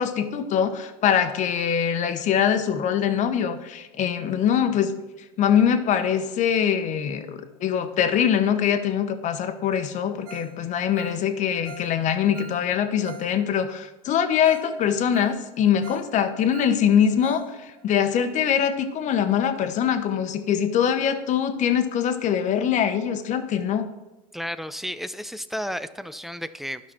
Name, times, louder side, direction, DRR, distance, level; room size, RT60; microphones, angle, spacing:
voice 1, 0.0-4.9 5.4-23.9, left 8 dB, 40° left, 8 dB, 1.0 m, -23 dB
Ringtone, 10.2-10.5 10.8-13.3 13.6-13.7 14.1-14.2 14.4-14.7 15.0-16.1 16.4-17.5 17.8-17.9 18.3-18.4, right 6 dB, 60° right, 1.4 m, -44 dB
voice 2, 24.3-26.9, equal, ahead, 11 dB, 0.4 m, -32 dB
12.0 x 6.0 x 4.3 m, 1.1 s
supercardioid pair, 110°, 18 cm